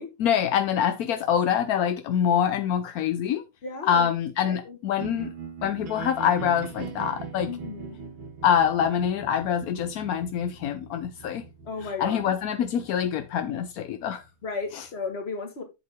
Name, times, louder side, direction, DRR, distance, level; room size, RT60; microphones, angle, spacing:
voice 1, 0.2-3.4 3.8-5.3 5.6-7.5 8.4-11.4 11.8-14.2 14.7-14.8, left 8 dB, 70° left, 0.9 m, -25 dB
voice 2, 3.6-4.1 4.4-4.8 7.5-8.0 11.7-12.3 14.4-15.6, left 4 dB, 30° left, 1.8 m, -34 dB
sound 1, 5.0-15.1, right 5 dB, 75° right, 2.6 m, -41 dB
7.7 x 7.5 x 3.5 m
omnidirectional pair, 2.2 m